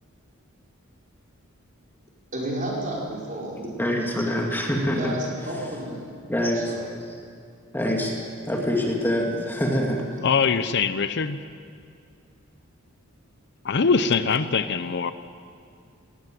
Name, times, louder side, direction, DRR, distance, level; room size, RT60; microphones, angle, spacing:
voice 1, 2.3-3.7 5.0-6.1 6.5-6.9, right 1 dB, 40° right, -4 dB, 5.1 m, -31 dB
voice 2, 3.8-5.1 6.3-6.7 7.7-8.1 8.5-10.0, equal, 10° left, 0 dB, 2.4 m, -25 dB
voice 3, 10.2-11.4 13.6-15.1, left 5 dB, 55° left, 12 dB, 0.7 m, -22 dB
20.0 x 17.5 x 7.6 m, 2.4 s
head